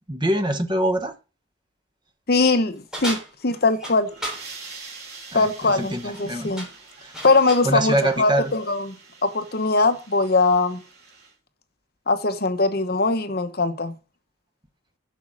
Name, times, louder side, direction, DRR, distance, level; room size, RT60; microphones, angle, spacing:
voice 1, 0.1-1.1 5.3-6.5 7.0-7.1 7.6-8.5, right 1 dB, 20° right, 1.1 m, -24 dB
voice 2, 2.3-3.2 3.4-4.1 5.3-6.7 7.2-8.9 9.2-10.8 12.1-13.9, left 3 dB, 50° left, 0.9 m, -21 dB
sound 1, 2.9-4.5 5.9-6.2 6.6-7.7, right 1 dB, 5° right, 3.3 m, -34 dB
sound 2, 4.0-11.3, right 4 dB, 55° right, 3.8 m, -45 dB
8.1 x 6.1 x 7.6 m
head